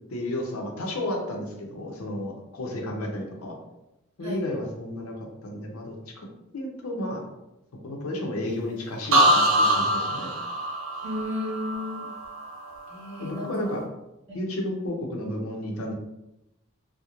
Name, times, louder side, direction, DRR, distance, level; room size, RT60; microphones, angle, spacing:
voice 1, 0.1-3.5 4.2-6.3 6.5-7.2 7.8-10.3 13.2-13.8 14.3-15.9, left 1 dB, 85° left, 1 dB, 0.6 m, -32 dB
sound 1, 9.1-12.9 13.3-13.8, equal, 70° right, 0.4 m, -24 dB
voice 2, 11.0-12.1 12.9-13.5 14.3-14.4, left 1 dB, 30° right, -6 dB, 0.9 m, -33 dB
2.4 x 2.0 x 2.9 m, 0.90 s
head